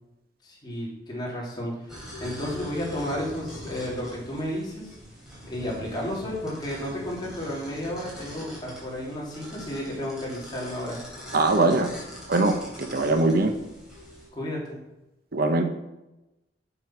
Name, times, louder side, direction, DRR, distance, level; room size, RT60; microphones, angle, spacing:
voice 1, 0.4-5.0 5.5-11.0 14.3-14.8, left 1 dB, 25° left, -5 dB, 3.3 m, -32 dB
sound 1, 1.9-14.3, left 1 dB, 5° right, 3.6 m, -42 dB
voice 2, 11.3-11.9 12.3-13.5 15.3-15.6, right 2 dB, 55° right, 6 dB, 0.9 m, -22 dB
7.9 x 7.1 x 5.9 m, 0.96 s
head